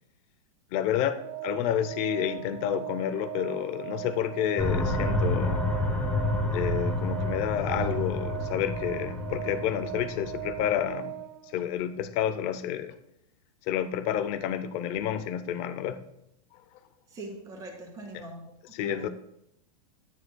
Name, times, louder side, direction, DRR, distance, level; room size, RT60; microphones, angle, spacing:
voice 1, 0.7-5.6 6.5-11.2 11.5-12.9 13.6-16.0 18.1-18.2 18.7-19.1, left 10 dB, 30° left, 0.6 m, -30 dB
Organ, 1.2-11.9, right 13 dB, 45° right, 0.7 m, -39 dB
sound 1, 4.6-10.9, left 1 dB, 10° left, 0.9 m, -29 dB
voice 2, 17.1-18.5 18.8-19.1, right 2 dB, 20° right, 2.1 m, -42 dB
13.0 x 9.5 x 2.2 m
supercardioid pair, 160°, 19 cm